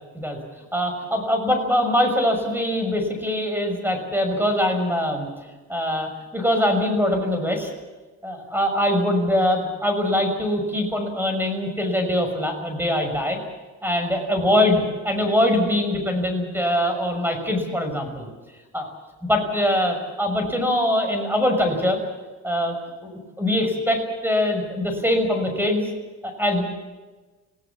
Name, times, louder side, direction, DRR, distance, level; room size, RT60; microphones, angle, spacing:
voice 1, 0.7-5.3 5.7-7.7 8.2-13.4 13.8-18.3 18.7-18.9 19.2-22.0 22.4-22.7 23.0-25.9 26.2-26.6, left 1 dB, 5° right, 5 dB, 6.2 m, -23 dB
26.5 x 17.5 x 7.3 m, 1.2 s
cardioid pair, 90°, 30 cm